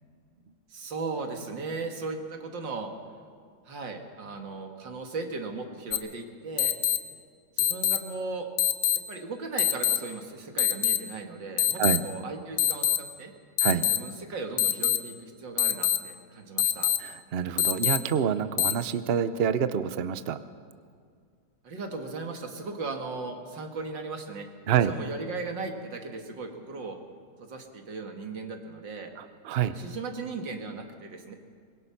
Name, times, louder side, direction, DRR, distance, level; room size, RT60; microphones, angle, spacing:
voice 1, 0.7-2.9 3.7-6.7 7.6-8.5 9.1-13.3 13.9-16.9 21.6-24.5 24.9-27.0 27.4-29.1 29.7-31.3, right 3 dB, 65° right, 4 dB, 2.6 m, -37 dB
sound 1, 5.9-6.0 6.6-7.0 7.6-8.0 8.6-9.0 9.6-10.0 10.6-11.0 11.6-12.0 12.6-13.0 13.6-14.0 14.6-15.0 15.6-16.0 16.6-17.0 17.6-18.0 18.6-18.7, left 11 dB, 75° left, 1.5 m, -23 dB
voice 2, 17.0-20.4 24.7-24.9 29.2-29.8, right 8 dB, 80° right, 12 dB, 0.5 m, -27 dB
24.0 x 21.5 x 5.8 m, 2.1 s
omnidirectional pair, 2.2 m